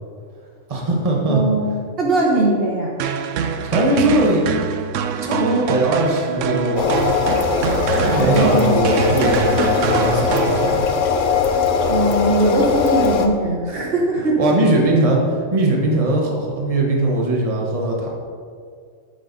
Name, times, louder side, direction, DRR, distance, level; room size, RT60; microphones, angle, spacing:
voice 1, 0.7-1.4 3.3-4.5 5.2-7.1 8.1-10.8 14.4-18.1, right 2 dB, 30° right, -1 dB, 1.3 m, -20 dB
voice 2, 1.3-1.7 2.0-2.9 8.0-8.8 11.9-14.4, right 2 dB, 50° right, -2 dB, 1.3 m, -20 dB
sound 1, 3.0-11.1, right 7 dB, 80° right, 0.9 m, -24 dB
sound 2, 6.8-13.3, left 5 dB, 85° left, 1.1 m, -20 dB
10.0 x 6.7 x 4.1 m, 2.1 s
omnidirectional pair, 1.3 m